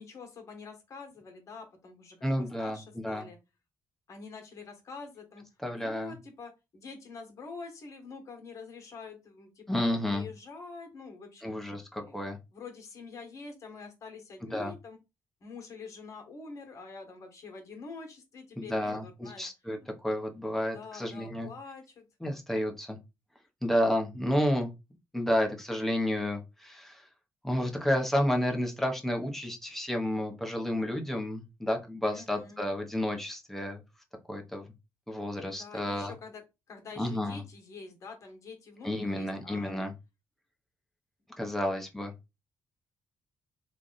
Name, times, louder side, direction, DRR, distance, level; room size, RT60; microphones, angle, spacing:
voice 1, 0.0-2.1 2.6-3.4 4.1-5.4 5.7-11.5 12.1-12.2 12.5-15.0 15.4-19.5 20.7-22.1 32.1-32.6 35.5-36.4 36.7-39.8, left 4 dB, 50° left, 3 dB, 1.5 m, -46 dB
voice 2, 2.2-3.3 5.6-6.1 9.7-10.3 11.4-12.4 14.5-14.7 18.6-21.5 22.2-23.0 23.6-24.7 25.1-27.1 27.4-33.8 34.3-34.7 35.1-36.1 37.0-37.4 38.8-39.9 41.4-42.1, left 1 dB, 5° left, 2 dB, 0.9 m, -31 dB
3.2 x 2.4 x 4.1 m, 0.25 s
cardioid pair, 110°, 6 cm